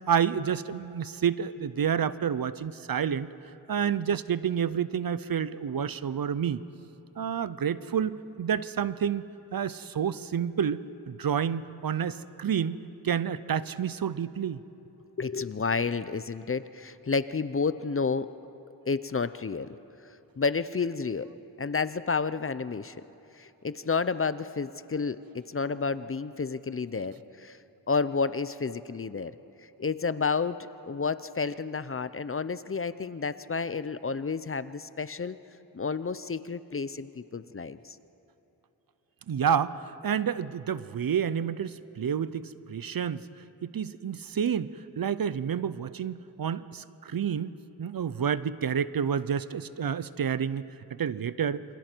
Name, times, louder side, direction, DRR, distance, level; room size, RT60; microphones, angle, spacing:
voice 1, 0.1-3.3 3.7-6.6 7.2-9.3 9.5-10.8 11.1-12.8 13.0-14.6 39.3-43.3 43.6-50.6 50.9-51.6, right 8 dB, 55° right, 16 dB, 0.7 m, -29 dB
voice 2, 15.2-18.3 18.9-19.7 20.4-21.3 21.6-23.0 23.4-27.6 27.9-29.4 29.8-30.6 30.8-35.4 35.7-38.0, left 4 dB, 30° left, 14 dB, 0.6 m, -30 dB
27.5 x 26.0 x 4.5 m, 3.0 s
cardioid pair, 65°, 42 cm